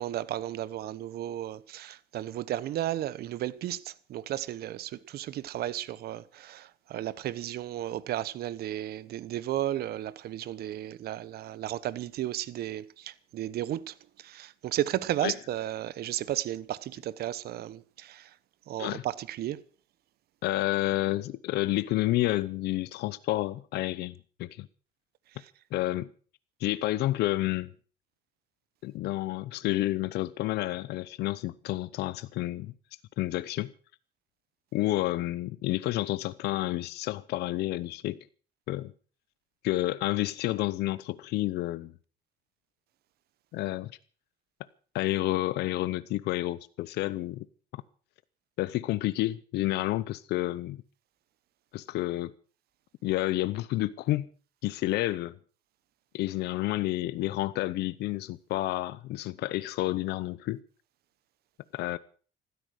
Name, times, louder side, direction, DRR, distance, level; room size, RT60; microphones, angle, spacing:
voice 1, 0.0-18.3 18.7-19.6 25.3-25.5, right 13 dB, 70° right, 1.1 m, -34 dB
voice 2, 20.4-24.7 25.7-26.1 26.6-27.7 28.8-32.7 33.2-33.7 34.7-38.2 38.7-38.9 39.6-41.9 43.5-43.9 44.9-47.5 48.6-50.8 51.7-52.3 53.0-54.3 54.6-55.4 56.1-60.6 61.7-62.0, left 16 dB, 80° left, 0.8 m, -30 dB
15.5 x 13.0 x 6.5 m
cardioid pair, 110°, 17 cm